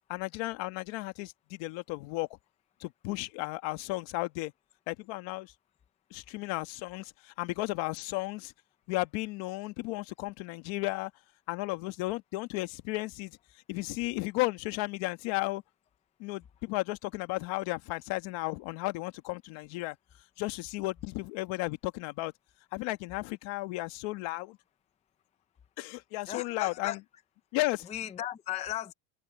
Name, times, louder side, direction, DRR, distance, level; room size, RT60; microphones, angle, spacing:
voice 1, 0.1-2.3 2.8-4.5 4.9-5.5 6.1-8.5 8.9-11.1 11.5-13.4 13.7-15.6 16.2-20.0 20.4-22.3 22.7-24.6 25.8-27.0 27.5-27.9, left 21 dB, 75° left, 1.6 m, -34 dB
voice 2, 26.3-27.0 27.8-28.9, left 12 dB, 15° left, 0.4 m, -36 dB
cardioid pair, 175°, 46 cm